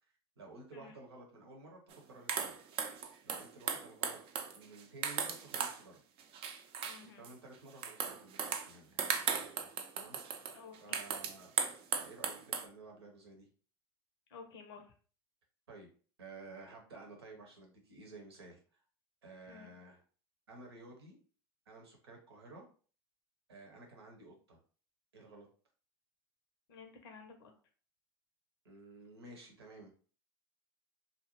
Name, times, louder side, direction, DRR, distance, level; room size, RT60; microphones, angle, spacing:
voice 1, 0.4-2.6 3.2-4.2 4.5-6.0 7.0-10.2 10.8-11.5 11.9-13.5 15.7-15.9 16.2-18.6 19.2-20.0 20.5-21.2 21.7-22.6 23.5-24.6 25.1-25.5 28.6-29.9, right 2 dB, 85° right, 1 dB, 0.9 m, -53 dB
sound 1, 1.9-2.0 2.3-5.8 6.2-7.3 7.8-12.7, right 7 dB, 45° right, 0.5 m, -37 dB
voice 2, 6.8-7.3 10.5-11.0 14.3-14.8 19.5-19.7 26.7-27.5, left 5 dB, 75° left, 4 dB, 0.6 m, -53 dB
2.6 x 2.1 x 2.9 m, 0.40 s
hypercardioid pair, 85°, 13 cm